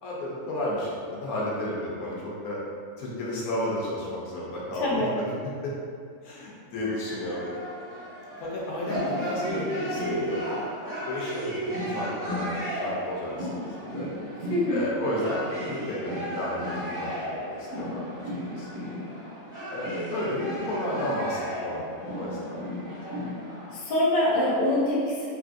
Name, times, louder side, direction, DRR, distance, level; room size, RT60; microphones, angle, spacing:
voice 1, 0.0-2.6 3.0-5.3 5.6-5.7 6.2-7.6 8.4-10.6 11.0-14.1 14.7-18.2 18.5-18.8 19.7-22.6, left 1 dB, 85° left, -5 dB, 1.2 m, -33 dB
sound 1, 6.8-23.7, equal, 70° right, 1.3 m, -34 dB
voice 2, 14.5-14.9 23.7-25.3, left 1 dB, 50° left, -6 dB, 0.7 m, -24 dB
3.2 x 2.5 x 2.4 m, 2.2 s
omnidirectional pair, 1.5 m